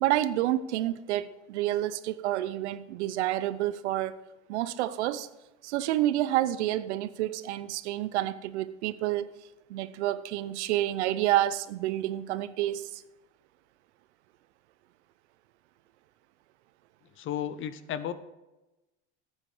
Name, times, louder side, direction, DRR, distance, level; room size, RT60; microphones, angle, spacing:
voice 1, 0.0-4.2 4.5-5.3 5.6-9.3 9.7-13.0, right 14 dB, 80° right, 0.8 m, -29 dB
voice 2, 17.2-18.1, left 10 dB, 35° left, 0.8 m, -33 dB
12.0 x 8.6 x 4.9 m
supercardioid pair, 115°, 33 cm